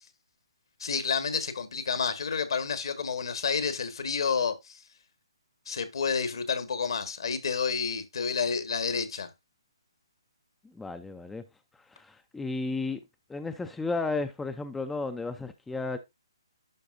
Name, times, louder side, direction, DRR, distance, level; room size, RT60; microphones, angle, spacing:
voice 1, 0.8-4.8 5.7-9.3, left 5 dB, 65° left, 1.5 m, -30 dB
voice 2, 10.6-11.4 11.9-13.0 13.3-16.0, left 3 dB, 5° left, 0.4 m, -33 dB
11.5 x 4.6 x 2.6 m
figure-of-eight pair, 145°, 3 cm